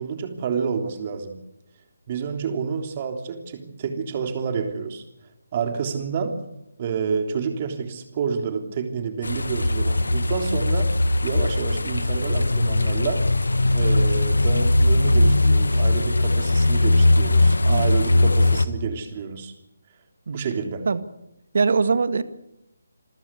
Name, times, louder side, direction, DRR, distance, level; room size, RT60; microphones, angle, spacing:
voice 1, 0.0-1.3 2.1-5.0 5.5-6.3 6.8-10.9 11.2-13.3 13.7-19.5 20.3-20.8, right 6 dB, 35° right, 6 dB, 3.4 m, -29 dB
sound 1, 9.2-18.7, left 2 dB, 80° left, 1.5 m, -19 dB
voice 2, 21.5-22.2, right 4 dB, 60° right, 13 dB, 1.6 m, -21 dB
27.5 x 14.5 x 8.4 m, 0.86 s
figure-of-eight pair, 150°, 0 cm